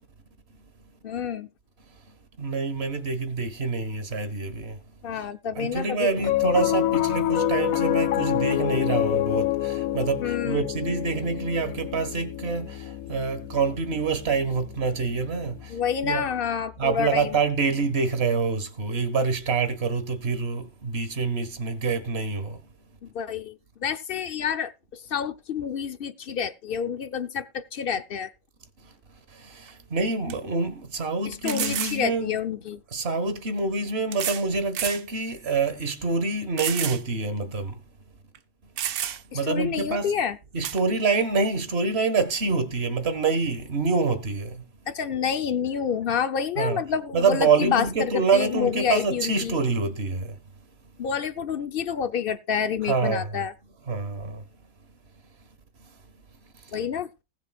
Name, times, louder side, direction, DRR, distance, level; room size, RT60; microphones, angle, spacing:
voice 1, 1.0-1.5 5.0-6.2 10.2-10.6 15.7-17.4 23.0-28.3 31.2-32.8 39.3-40.4 44.9-49.5 51.0-53.5 56.7-57.1, left 7 dB, 45° left, 0.8 m, -28 dB
voice 2, 2.4-4.8 5.5-15.7 16.0-16.2 16.8-22.6 29.4-32.3 32.9-37.7 39.3-40.1 40.5-44.6 46.6-46.8 47.1-50.3 52.8-53.4 53.9-54.4, right 4 dB, 45° right, 1.7 m, -26 dB
Piano, 6.2-16.7, left 13 dB, 65° left, 1.1 m, -28 dB
sound 1, 29.7-29.8 30.3-30.4 31.5-32.0 33.1-33.2 34.1-34.5 34.7-35.0 35.5-35.6 36.6-37.0 37.4-37.5 38.3-38.4 38.8-39.4 40.6-40.8, right 9 dB, 75° right, 1.3 m, -30 dB
20.0 x 7.2 x 2.4 m
omnidirectional pair, 1.6 m